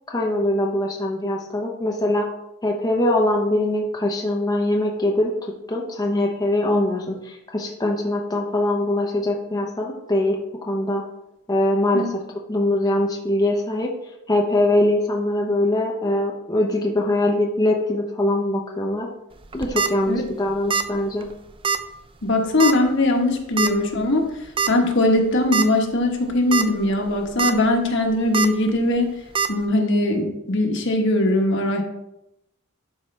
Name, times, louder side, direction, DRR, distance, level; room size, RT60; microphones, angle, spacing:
voice 1, 0.1-2.3 2.6-11.0 11.5-12.2 12.5-19.1 19.5-21.3, left 1 dB, 20° left, -1 dB, 0.8 m, -22 dB
sound 1, 19.4-19.9 20.7-21.0 21.2-21.3 21.6-21.8 22.6-22.9 23.6-23.7 24.6-24.7 25.2-25.3 25.5-25.6 26.3-26.6 27.1-27.5 28.3-28.5 29.3-29.5, right 6 dB, 25° right, 0.4 m, -22 dB
voice 2, 22.2-24.2 24.7-29.1 29.5-31.8, left 1 dB, 55° left, 3 dB, 1.2 m, -20 dB
12.0 x 4.7 x 3.3 m, 0.87 s
head